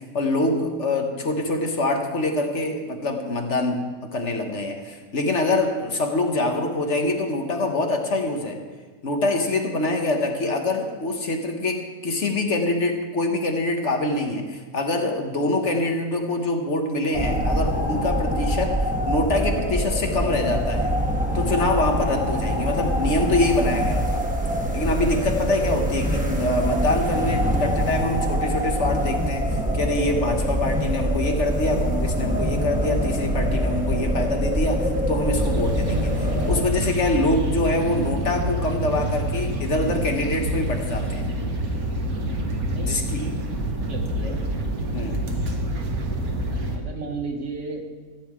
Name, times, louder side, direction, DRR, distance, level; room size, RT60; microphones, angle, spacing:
voice 1, 0.0-3.8 4.1-8.6 9.0-18.8 19.1-20.9 21.3-24.2 24.7-41.3 42.8-43.3 44.9-45.2, left 2 dB, 50° left, 4 dB, 1.4 m, -25 dB
sound 1, 17.1-36.6, equal, 5° right, 1.4 m, -24 dB
sound 2, 35.3-46.8, right 1 dB, 70° right, 1.9 m, -27 dB
voice 2, 43.9-44.4 44.7-44.9 46.7-47.8, right 4 dB, 55° right, 3 dB, 1.6 m, -34 dB
15.0 x 5.5 x 8.6 m, 1.5 s
omnidirectional pair, 1.6 m